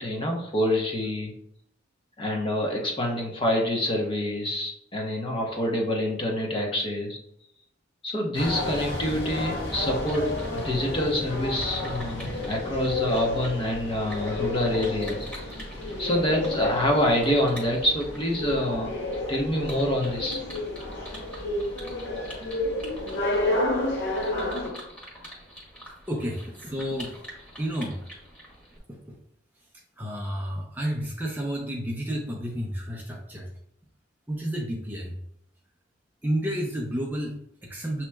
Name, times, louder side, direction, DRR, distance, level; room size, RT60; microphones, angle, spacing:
voice 1, 0.0-1.3 2.2-7.2 8.0-15.2 15.5-15.6 16.0-18.9 19.3-20.4, left 1 dB, 30° left, 0 dB, 0.9 m, -26 dB
sound 1, 8.3-24.7, left 2 dB, 65° left, 0.9 m, -31 dB
sound 2, 10.0-28.8, equal, 5° left, 1.3 m, -46 dB
voice 2, 26.1-27.1 27.6-28.0 28.9-29.2 30.0-33.5 34.3-35.2 36.2-38.0, equal, 10° right, -1 dB, 0.5 m, -31 dB
7.2 x 3.0 x 2.2 m, 0.73 s
head